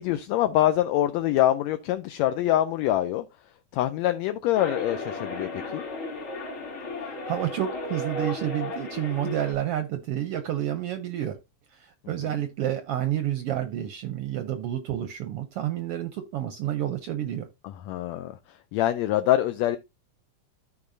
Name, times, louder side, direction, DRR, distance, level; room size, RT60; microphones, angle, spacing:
voice 1, 0.0-3.3 3.7-5.8 12.2-12.4 17.6-19.8, left 13 dB, 80° left, 1.7 m, -25 dB
sound 1, 4.5-9.5, left 2 dB, 45° left, 3.0 m, -34 dB
voice 2, 7.3-11.4 11.7-17.5, right 11 dB, 75° right, 1.4 m, -29 dB
13.5 x 4.8 x 2.6 m
omnidirectional pair, 3.3 m